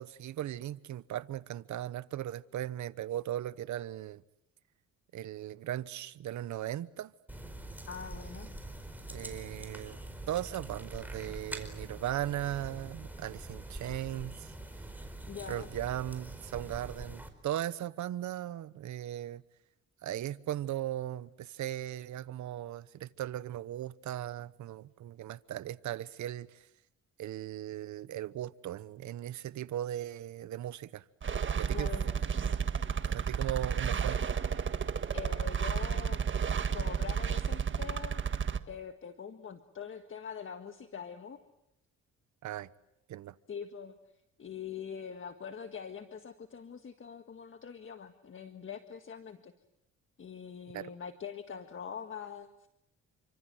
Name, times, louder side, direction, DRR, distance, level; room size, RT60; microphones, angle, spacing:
voice 1, 0.0-4.2 5.1-7.1 9.1-10.0 10.3-14.5 15.5-19.4 20.0-26.7 27.2-31.0 31.6-32.0 33.0-34.2 42.4-42.7 43.1-43.4 50.7-50.9, right 12 dB, 70° right, 1.1 m, -38 dB
sound 1, 7.3-17.3, right 1 dB, 5° right, 4.8 m, -44 dB
voice 2, 7.8-8.5 15.3-15.7 31.7-32.1 35.1-36.2 36.7-38.2 38.7-41.4 43.5-43.9 44.4-49.5 50.2-52.7, left 7 dB, 40° left, 1.7 m, -43 dB
sound 2, 31.2-38.6, right 6 dB, 40° right, 1.6 m, -32 dB
29.0 x 25.5 x 7.8 m
cardioid pair, 90°, 30 cm